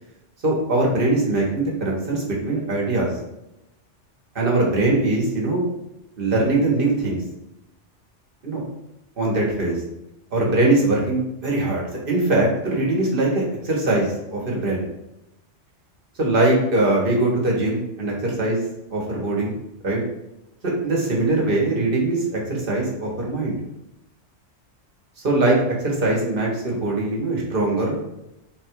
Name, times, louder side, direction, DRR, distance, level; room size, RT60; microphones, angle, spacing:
voice 1, 0.4-3.1 4.3-5.6 6.2-7.2 8.4-8.6 9.2-9.8 10.3-14.9 16.2-18.6 18.9-19.5 19.8-20.0 20.6-23.6 25.2-28.0, right 2 dB, 50° right, -2 dB, 1.2 m, -21 dB
3.9 x 2.3 x 4.4 m, 0.88 s
omnidirectional pair, 1.2 m